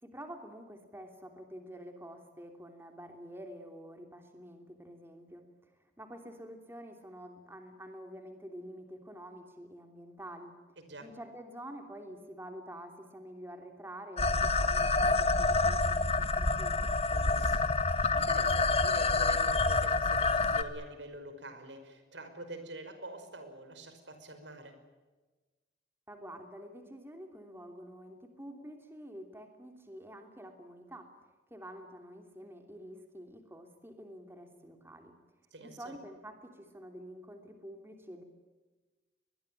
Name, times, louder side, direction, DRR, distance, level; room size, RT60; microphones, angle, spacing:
voice 1, 0.0-10.5 11.0-16.8 26.1-31.1 31.5-35.1 35.6-38.2, equal, 15° right, 5 dB, 3.0 m, -48 dB
voice 2, 10.8-11.1 17.1-24.8 35.5-36.0, right 1 dB, 85° right, 8 dB, 5.4 m, -46 dB
sound 1, 14.2-20.6, left 3 dB, 35° left, 1.4 m, -27 dB
24.5 x 21.0 x 9.1 m, 1.2 s
head